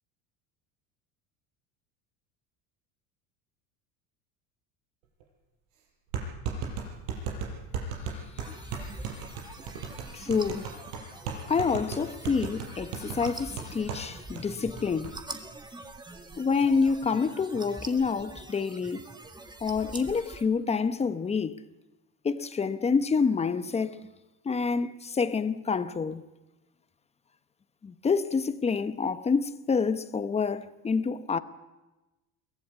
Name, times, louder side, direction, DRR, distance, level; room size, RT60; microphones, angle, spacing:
sound 1, 5.2-5.3 6.1-14.1 14.4-14.5 14.8-15.1, right 6 dB, 90° right, 6.3 m, -35 dB
sound 2, 8.4-20.4, right 2 dB, 10° right, 1.7 m, -44 dB
voice 1, 10.1-10.7 11.5-15.2 16.4-19.1 19.6-21.6 22.2-24.0 24.4-26.2 27.8-31.4, left 5 dB, 15° left, 0.9 m, -27 dB
23.0 x 17.0 x 8.7 m
cardioid pair, 135°, 38 cm